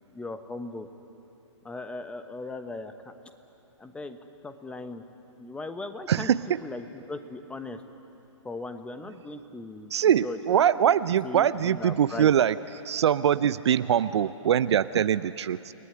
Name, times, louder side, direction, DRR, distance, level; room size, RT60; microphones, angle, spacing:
voice 1, 0.1-0.9 1.6-2.9 3.8-5.0 5.4-6.3 6.6-7.8 8.4-9.9 10.2-11.0 11.2-12.3, left 3 dB, 5° left, 8 dB, 1.2 m, -38 dB
voice 2, 9.9-12.6 12.8-15.7, right 9 dB, 55° right, 15 dB, 0.7 m, -23 dB
29.5 x 19.5 x 9.8 m, 2.9 s
figure-of-eight pair, 125°, 16 cm